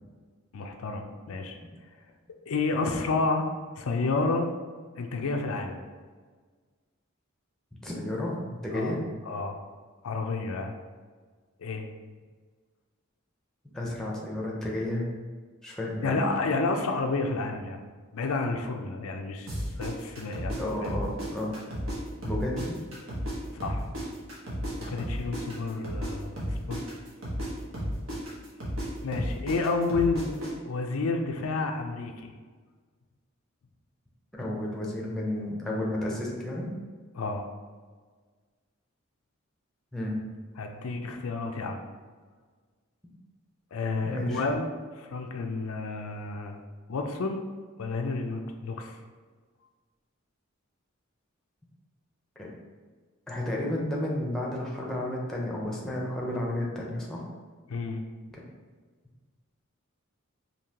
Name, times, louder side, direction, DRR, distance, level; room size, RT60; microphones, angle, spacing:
voice 1, 0.5-1.6 2.5-3.5 3.8-4.5 5.0-5.8 8.7-9.0 9.3-9.7 10.0-10.7 11.6-11.9 16.0-17.8 18.1-20.6 20.8-20.9 23.5-23.9 24.8-26.8 29.0-30.4 30.6-32.3 37.1-37.5 40.6-41.8 43.7-46.6 46.9-47.4 47.8-49.0 57.7-58.0, left 3 dB, 90° left, 4 dB, 0.5 m, -30 dB
voice 2, 7.8-9.0 13.7-15.1 15.6-16.3 20.6-21.5 22.2-22.6 34.3-36.7 39.9-40.2 44.0-44.4 52.4-52.5 53.3-57.2 58.3-58.4, left 1 dB, ahead, -3 dB, 0.6 m, -32 dB
sound 1, 19.5-22.0 22.2-26.1 26.4-30.5, equal, 75° right, 1.2 m, -33 dB
5.2 x 2.8 x 2.8 m, 1.5 s
head